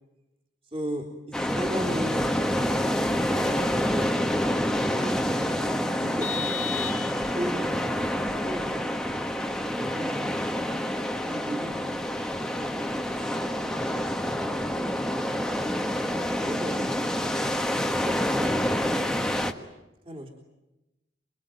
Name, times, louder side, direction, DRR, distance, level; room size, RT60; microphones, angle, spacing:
voice 1, 0.6-5.4 6.0-8.9 9.8-10.4 11.3-12.1 12.8-15.7 16.4-16.9 17.2-17.6 18.0-18.4 18.8-19.0 20.0-20.3, right 1 dB, 30° right, 0 dB, 3.6 m, -38 dB
sound 1, 1.3-19.5, equal, 5° left, 1.4 m, -27 dB
Vehicle horn car horn honking, 6.2-7.6, left 8 dB, 45° left, 1.5 m, -34 dB
26.5 x 23.0 x 9.2 m, 0.99 s
head